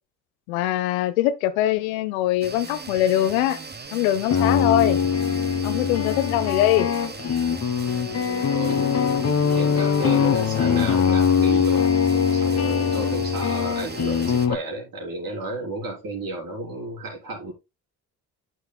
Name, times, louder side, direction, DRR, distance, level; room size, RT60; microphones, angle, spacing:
voice 1, 0.5-3.6 3.9-5.0 5.6-6.9, left 13 dB, 85° left, 0.8 m, -22 dB
sound 1, 2.4-14.5, right 4 dB, 25° right, 1.1 m, -38 dB
sound 2, 4.1-14.6, left 7 dB, 40° left, 1.2 m, -22 dB
voice 2, 8.1-17.5, right 2 dB, 55° right, 3.6 m, -33 dB
11.0 x 6.7 x 2.2 m
hypercardioid pair, 45°, 41 cm